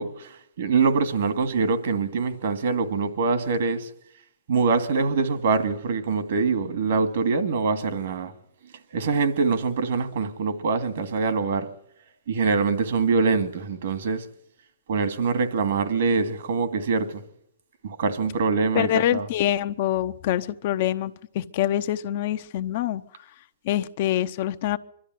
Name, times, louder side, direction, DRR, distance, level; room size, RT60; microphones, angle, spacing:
voice 1, 0.0-3.9 4.5-8.3 8.9-11.7 12.3-14.2 14.9-17.2 17.8-19.3, right 4 dB, 65° right, 2.4 m, -24 dB
voice 2, 18.7-23.0 23.6-24.8, left 12 dB, 50° left, 0.9 m, -25 dB
23.5 x 13.0 x 9.4 m
hypercardioid pair, 140°, 0 cm